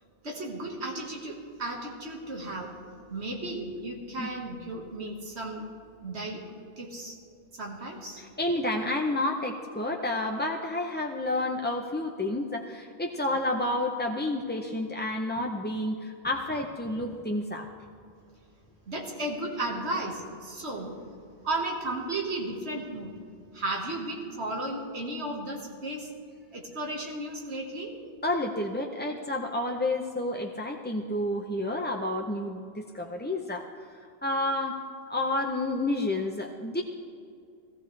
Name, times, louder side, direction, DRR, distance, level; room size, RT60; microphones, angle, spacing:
voice 1, 0.2-2.7 3.1-5.7 6.0-6.4 6.8-7.2 7.5-8.2 18.9-20.9 21.4-23.1 23.5-26.1 26.5-27.9, right 2 dB, 75° right, 0 dB, 1.9 m, -34 dB
voice 2, 8.2-17.7 28.2-34.8 35.1-36.8, left 1 dB, 15° left, 1 dB, 0.4 m, -30 dB
17.5 x 15.0 x 3.3 m, 2.4 s
omnidirectional pair, 1.1 m